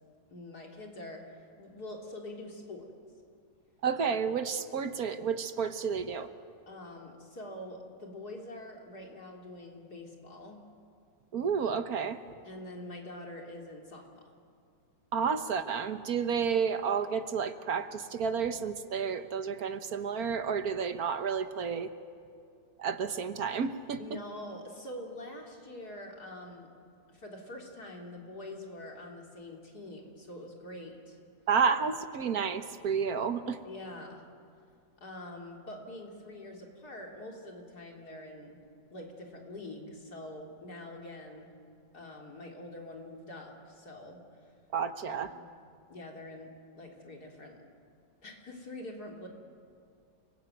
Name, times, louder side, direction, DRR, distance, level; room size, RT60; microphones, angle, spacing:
voice 1, 0.3-2.9 6.7-10.6 12.4-14.3 24.0-26.7 27.1-31.2 33.6-34.2 35.0-38.6 38.9-41.5 41.9-44.5 45.1-45.5 45.9-47.6 48.2-49.3, left 1 dB, 55° left, 1 dB, 3.8 m, -45 dB
voice 2, 3.8-6.3 11.3-12.2 15.1-21.9 22.8-24.0 31.5-33.6 44.7-45.3, right 6 dB, 55° right, 10 dB, 1.5 m, -31 dB
30.0 x 20.5 x 9.2 m, 2.3 s
omnidirectional pair, 2.0 m